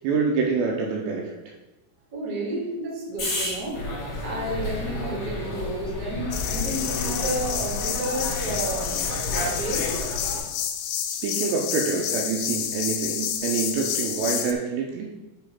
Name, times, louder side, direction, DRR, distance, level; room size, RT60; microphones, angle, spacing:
voice 1, 0.0-1.4 11.1-15.1, right 5 dB, 80° right, 1 dB, 2.7 m, -26 dB
voice 2, 2.1-3.9 4.2-9.9, right 1 dB, 55° right, -4 dB, 1.1 m, -31 dB
sound 1, 3.2-7.6 8.3-9.1 11.9-12.2, left 1 dB, 30° left, 1.8 m, -37 dB
sound 2, 3.7-10.4, left 1 dB, 55° left, 1.9 m, -32 dB
sound 3, 6.3-14.5, left 9 dB, 90° left, 2.4 m, -29 dB
8.0 x 3.4 x 5.6 m, 1.0 s
omnidirectional pair, 5.7 m